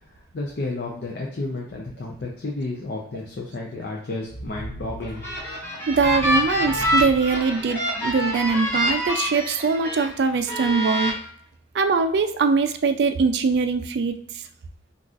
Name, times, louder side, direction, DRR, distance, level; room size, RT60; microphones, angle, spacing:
voice 1, 0.2-5.2, left 2 dB, 60° left, -2 dB, 0.5 m, -32 dB
sound 1, 4.2-8.3, equal, 90° left, 1.2 m, -38 dB
sound 2, 5.0-10.1 10.5-11.1, equal, 15° left, 0.8 m, -26 dB
voice 2, 5.9-11.1 11.7-14.2, right 4 dB, 70° right, 9 dB, 0.3 m, -22 dB
3.9 x 2.4 x 2.4 m, 0.62 s
head